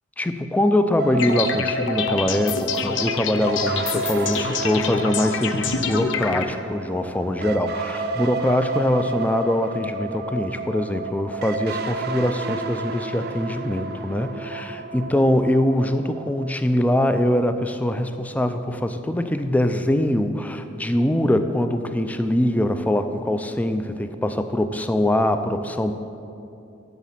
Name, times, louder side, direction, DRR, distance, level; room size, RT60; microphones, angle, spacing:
voice 1, 0.2-25.9, left 1 dB, 10° left, 8 dB, 0.4 m, -23 dB
sound 1, 1.0-16.5, right 3 dB, 50° right, 0.5 m, -31 dB
sound 2, 1.2-6.5, left 6 dB, 65° left, 0.6 m, -27 dB
12.0 x 4.1 x 7.5 m, 2.8 s
head